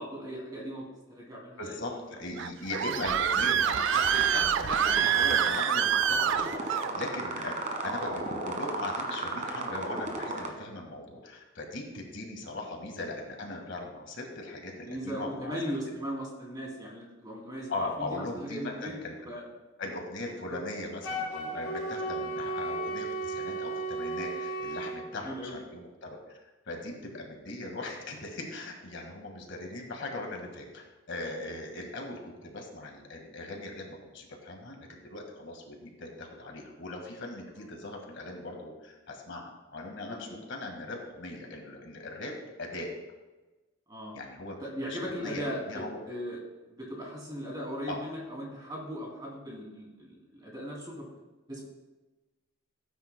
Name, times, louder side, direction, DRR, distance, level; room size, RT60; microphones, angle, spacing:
voice 1, 0.0-2.0 12.5-12.6 14.7-19.0 19.2-19.4 20.5-20.6 25.1-25.6 40.3-40.4 43.9-44.2 44.6-46.4 46.7-51.1 51.5-51.7, equal, 20° right, -2 dB, 2.6 m, -38 dB
voice 2, 1.6-15.5 17.7-19.3 19.8-42.9 44.1-44.6 44.9-46.0 47.9-48.0, left 2 dB, 55° left, 2 dB, 1.7 m, -39 dB
Screaming, 2.4-6.9, right 8 dB, 55° right, 0.3 m, -26 dB
sound 1, 3.7-10.5, right 2 dB, 35° right, 1.3 m, -35 dB
Wind instrument woodwind instrument, 21.0-25.0, right 2 dB, 85° left, 3.4 m, -34 dB
17.5 x 9.2 x 2.2 m, 1.2 s
head